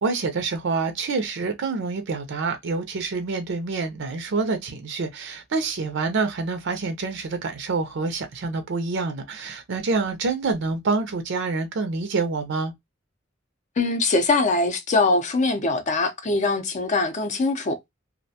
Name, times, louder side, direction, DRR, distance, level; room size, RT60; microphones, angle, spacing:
voice 1, 0.0-12.7, right 4 dB, 65° right, 0.5 m, -27 dB
voice 2, 13.8-17.9, left 3 dB, 40° left, 0.5 m, -22 dB
2.4 x 2.1 x 2.6 m
head